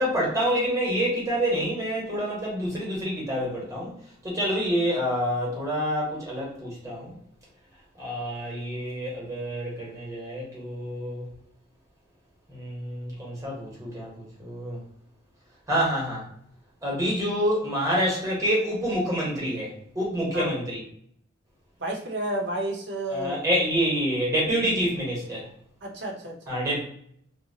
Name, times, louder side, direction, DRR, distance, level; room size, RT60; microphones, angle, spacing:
voice 1, 0.0-3.9 4.2-7.1 8.0-11.3 12.5-14.8 15.7-16.2 16.8-20.8 23.1-25.5 26.5-26.8, equal, 15° right, -5 dB, 1.0 m, -27 dB
voice 2, 21.8-23.4 25.8-26.6, right 1 dB, 60° right, 0 dB, 0.7 m, -31 dB
2.7 x 2.2 x 2.7 m, 0.68 s
head